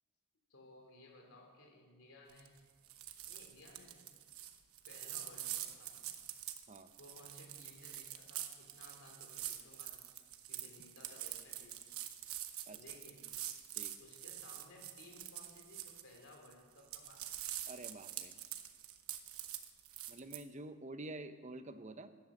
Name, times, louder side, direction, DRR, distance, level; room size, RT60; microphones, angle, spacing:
voice 1, 0.5-2.6 3.3-4.1 4.8-6.1 7.0-10.0 10.5-11.9 12.7-13.3 14.0-17.2, left 2 dB, 65° left, 1 dB, 3.1 m, -59 dB
sound 1, 2.3-2.6 2.8-16.5 16.8-20.4, right 12 dB, 80° right, 1.1 m, -46 dB
voice 2, 17.7-18.3 20.1-22.1, right 2 dB, 35° right, 10 dB, 0.9 m, -48 dB
15.0 x 11.5 x 7.3 m, 1.5 s
head